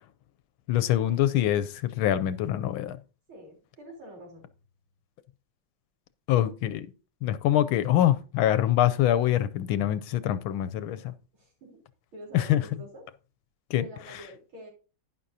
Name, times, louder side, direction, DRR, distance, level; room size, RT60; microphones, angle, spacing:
voice 1, 0.7-3.0 6.3-6.9 7.2-11.1 12.3-12.6 13.7-13.9, left 12 dB, 75° left, 1.4 m, -24 dB
voice 2, 3.3-4.5 11.3-11.8 12.1-13.0 13.8-14.7, equal, 70° right, 4.6 m, -46 dB
11.5 x 10.5 x 2.7 m
omnidirectional pair, 2.4 m